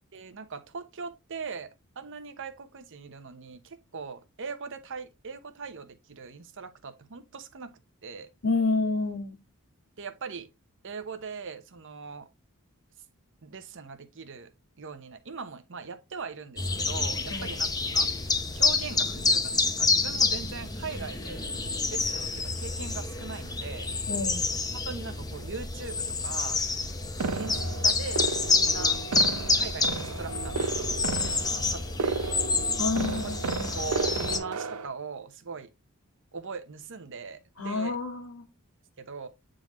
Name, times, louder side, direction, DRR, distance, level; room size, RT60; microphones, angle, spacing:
voice 1, 0.1-1.7 2.0-8.3 10.0-10.5 10.8-12.3 13.4-14.5 14.8-18.1 18.5-21.5 21.9-23.9 24.8-26.6 27.3-29.3 29.5-32.2 33.2-33.3 33.7-35.7 36.3-38.0 39.0-39.3, right 5 dB, 60° right, 0.8 m, -40 dB
voice 2, 8.4-9.4 17.3-17.5 24.1-24.5 32.8-33.7 37.6-38.4, left 3 dB, 75° left, 1.8 m, -29 dB
sound 1, 16.6-34.4, left 3 dB, 15° left, 0.8 m, -28 dB
sound 2, 27.2-34.9, right 4 dB, 80° right, 0.6 m, -33 dB
8.8 x 3.8 x 3.0 m
head